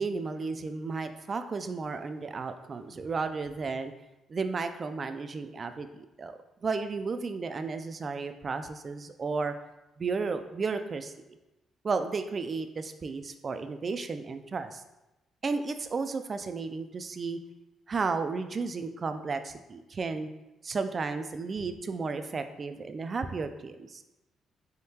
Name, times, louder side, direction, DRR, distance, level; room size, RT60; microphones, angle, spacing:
voice 1, 0.0-3.9 4.3-6.3 6.6-9.5 10.0-11.1 11.8-14.8 15.4-17.4 17.9-20.3 20.6-24.0, right 4 dB, 40° right, 9 dB, 0.3 m, -33 dB
3.6 x 3.6 x 2.8 m, 0.99 s
cardioid pair, 90°, 0 cm